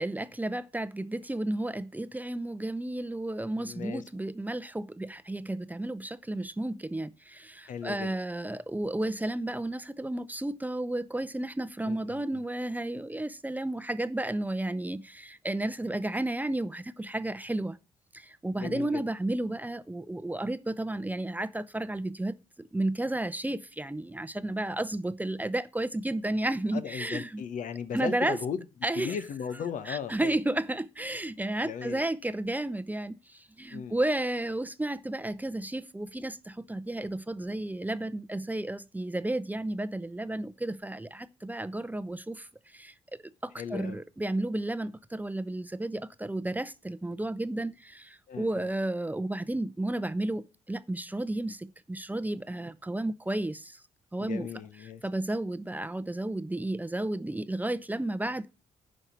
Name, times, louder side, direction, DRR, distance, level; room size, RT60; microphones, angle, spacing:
voice 1, 0.0-17.8 18.1-27.4 27.9-28.4 28.8-29.2 29.8-42.9 43.4-53.8 54.1-54.5 55.0-58.5, right 1 dB, 10° right, 0.7 m, -32 dB
voice 2, 3.6-4.0 7.7-8.1 11.8-12.4 18.6-19.0 26.7-28.6 29.0-30.3 31.6-32.0 33.7-34.0 43.6-44.0 48.3-48.7 54.2-55.0, left 7 dB, 60° left, 0.9 m, -37 dB
9.7 x 5.4 x 6.0 m
hypercardioid pair, 45°, 15 cm